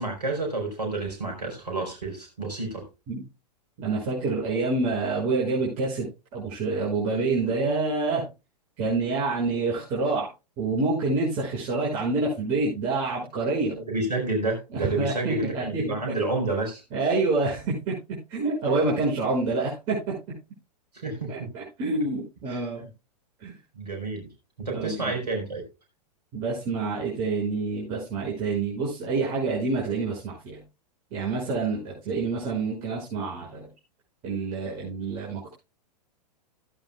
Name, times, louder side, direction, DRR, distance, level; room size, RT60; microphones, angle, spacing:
voice 1, 0.0-2.8 13.7-16.8 20.9-21.5 22.5-22.9 23.7-24.3 24.6-25.6 32.1-32.2, right 2 dB, 75° right, 3 dB, 4.8 m, -30 dB
voice 2, 3.8-6.1 6.3-8.2 8.8-10.3 10.6-13.8 14.7-16.0 16.9-18.0 18.3-20.0 21.3-22.8 23.4-23.5 24.7-25.1 26.3-30.6 31.1-33.7 34.2-35.5, right 3 dB, 40° right, -4 dB, 6.1 m, -27 dB
17.0 x 9.1 x 2.3 m, 0.27 s
figure-of-eight pair, 105°, 21 cm